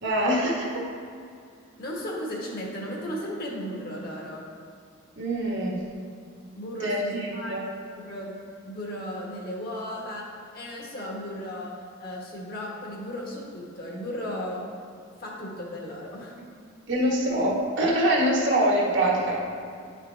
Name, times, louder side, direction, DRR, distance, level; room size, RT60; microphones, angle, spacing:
voice 1, 0.0-0.8 5.2-5.8 6.8-7.7 16.9-19.4, right 1 dB, 60° right, -2 dB, 1.3 m, -24 dB
voice 2, 1.8-4.4 6.5-7.6 8.0-8.3 8.6-10.3 10.5-11.7 12.0-14.6 15.2-16.3, equal, 50° left, -2 dB, 1.3 m, -35 dB
9.3 x 5.0 x 3.3 m, 2.3 s
head